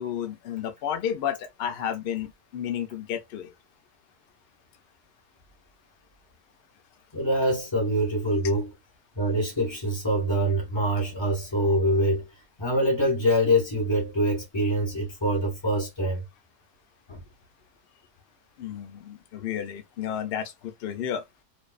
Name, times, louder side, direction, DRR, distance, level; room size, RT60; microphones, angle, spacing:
voice 1, 0.0-3.5 18.6-21.2, left 9 dB, 70° left, 0.5 m, -32 dB
voice 2, 7.1-8.7 9.1-12.3 12.6-16.2 17.1-17.2, equal, 20° left, 1.0 m, -25 dB
2.6 x 2.2 x 2.3 m
omnidirectional pair, 1.6 m